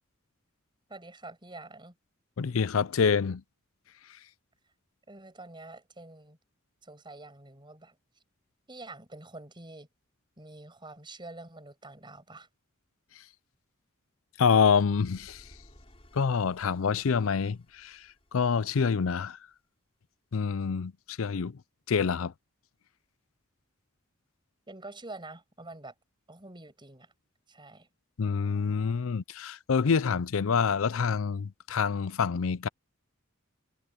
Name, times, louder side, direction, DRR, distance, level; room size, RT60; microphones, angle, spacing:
voice 1, 0.9-2.0 5.1-6.4 6.8-8.0 8.7-9.9 10.4-12.5 24.7-25.9 26.3-27.1 27.5-27.9, right 2 dB, 25° right, 6.9 m, -46 dB
voice 2, 2.4-3.4 14.4-15.4 16.1-18.0 18.3-19.4 20.3-21.6 21.9-22.3 28.2-32.7, left 6 dB, 85° left, 0.5 m, -26 dB
sound 1, 14.5-19.5, left 1 dB, 30° left, 6.6 m, -59 dB
head